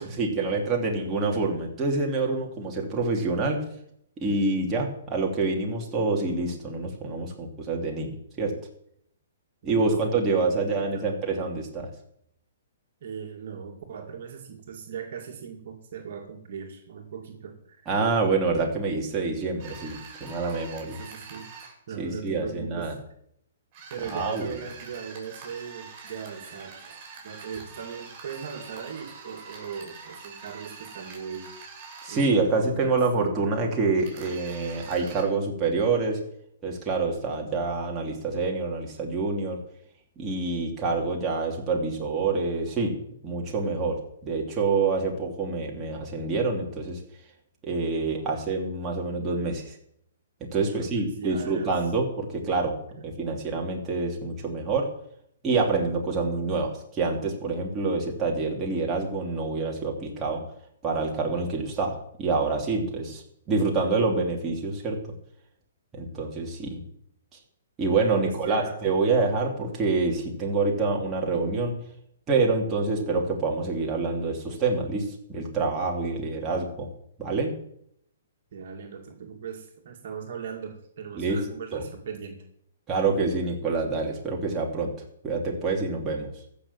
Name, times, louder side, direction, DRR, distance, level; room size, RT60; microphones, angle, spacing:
voice 1, 0.0-3.6 4.2-8.5 9.6-11.9 17.9-21.0 22.0-23.0 24.0-24.5 32.0-36.2 36.6-39.6 40.2-43.0 43.2-47.0 47.6-49.8 50.5-54.9 55.4-60.4 60.8-65.0 65.9-66.8 67.8-71.7 72.3-76.9 77.2-77.5 81.2-81.4 81.7-81.8 82.9-84.9 85.2-86.3, right 3 dB, 20° right, -1 dB, 3.1 m, -27 dB
voice 2, 9.6-11.3 13.0-17.8 21.0-21.5 21.9-22.9 23.9-27.0 27.2-31.5 32.1-33.5 47.9-48.3 50.6-51.7 53.0-53.1 68.1-68.8 78.5-82.5, right 7 dB, 60° right, 2 dB, 2.2 m, -39 dB
sound 1, 19.6-21.7 23.7-32.3 34.0-35.2, right 5 dB, 35° right, 6.6 m, -45 dB
14.5 x 6.5 x 7.4 m, 0.71 s
hypercardioid pair, 135°, 0 cm